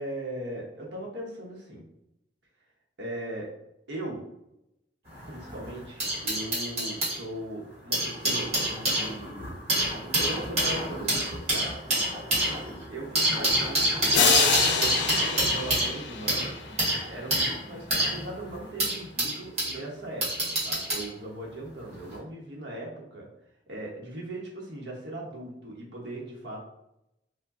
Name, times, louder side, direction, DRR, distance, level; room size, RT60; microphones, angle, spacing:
voice 1, 0.0-1.8 3.0-3.5 3.9-4.2 5.3-9.5 10.1-11.7 12.5-16.5 17.1-23.3 23.7-26.6, right 1 dB, 80° right, -2 dB, 0.9 m, -39 dB
sound 1, 5.1-7.2 7.7-19.8 20.2-21.1 22.0-22.2, right 1 dB, 40° right, 1.5 m, -27 dB
sound 2, 14.1-16.8, left 6 dB, 85° left, 0.5 m, -26 dB
4.5 x 2.2 x 2.6 m, 0.86 s
head